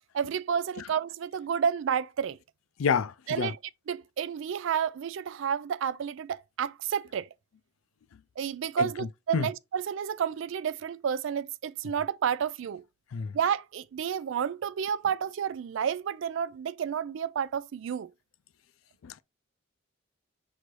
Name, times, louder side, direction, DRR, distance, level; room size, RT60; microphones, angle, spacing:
voice 1, 0.1-2.4 3.3-3.6 3.9-7.3 8.4-12.8 13.3-18.1, right 7 dB, 65° right, 0.3 m, -30 dB
voice 2, 2.8-3.5 8.8-8.9 9.3-9.5 13.1-13.3 19.0-19.2, left 6 dB, 80° left, 0.4 m, -28 dB
6.0 x 2.7 x 3.2 m
head